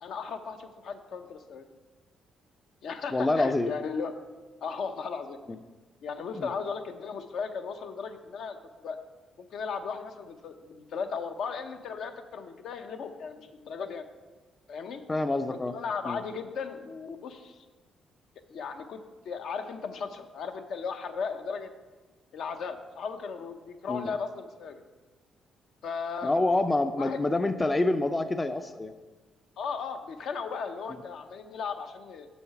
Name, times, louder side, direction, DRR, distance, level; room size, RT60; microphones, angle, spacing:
voice 1, 0.0-1.7 2.8-4.1 4.6-5.6 6.0-9.0 9.4-14.0 14.7-15.0 15.5-17.6 18.5-21.7 22.3-24.8 25.8-26.3 27.0-27.2 29.6-32.3, left 5 dB, 70° left, 6 dB, 0.7 m, -36 dB
voice 2, 3.1-3.7 6.3-6.5 15.1-15.8 16.1-16.2 23.9-24.1 26.2-28.9 30.9-31.0, left 2 dB, 20° left, 9 dB, 0.4 m, -27 dB
7.0 x 5.7 x 5.8 m, 1.3 s
cardioid pair, 90°, 0 cm